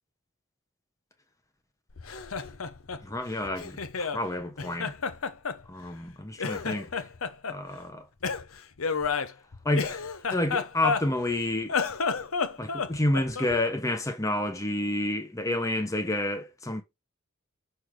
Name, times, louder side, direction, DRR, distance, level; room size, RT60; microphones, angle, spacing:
Laughter, 1.9-4.2 4.6-6.1 6.4-7.6 8.2-11.3 11.6-13.6, left 5 dB, 80° left, 0.9 m, -31 dB
voice 1, 3.0-4.9 5.7-7.0 7.5-8.0 9.6-11.8 12.6-16.8, left 1 dB, 15° left, 1.1 m, -29 dB
6.4 x 5.8 x 4.8 m
head